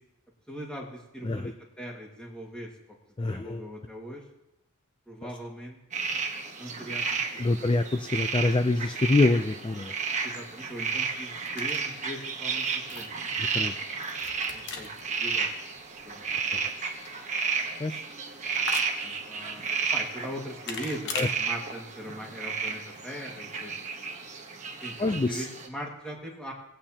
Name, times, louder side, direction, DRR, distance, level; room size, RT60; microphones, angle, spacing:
voice 1, 0.5-2.7 3.3-4.2 5.1-5.8 6.6-7.4 10.2-12.7 12.9-13.1 14.5-15.5 16.0-16.5 19.0-19.6 19.9-23.7 24.8-26.5, equal, 5° left, -2 dB, 1.9 m, -40 dB
voice 2, 3.2-3.7 7.4-9.9 13.5-13.7 17.8-18.0 21.1-21.3 25.0-25.4, left 2 dB, 20° left, 8 dB, 0.3 m, -25 dB
sound 1, 5.9-25.7, right 5 dB, 35° right, 1.2 m, -32 dB
sound 2, 10.1-21.3, left 4 dB, 50° left, 1.1 m, -43 dB
18.0 x 8.9 x 2.9 m, 0.92 s
head